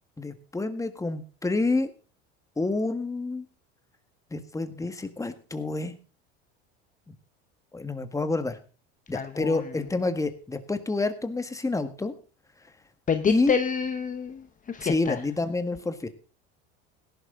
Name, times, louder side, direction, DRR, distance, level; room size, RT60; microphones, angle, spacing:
voice 1, 0.2-1.9 2.6-3.4 4.3-5.9 7.1-7.2 7.7-8.6 9.1-12.1 13.3-13.6 14.8-16.1, left 3 dB, 10° left, 1.6 m, -28 dB
voice 2, 9.1-9.6 13.1-15.2, left 6 dB, 25° left, 1.0 m, -28 dB
17.5 x 11.5 x 3.8 m
supercardioid pair, 105°, 31 cm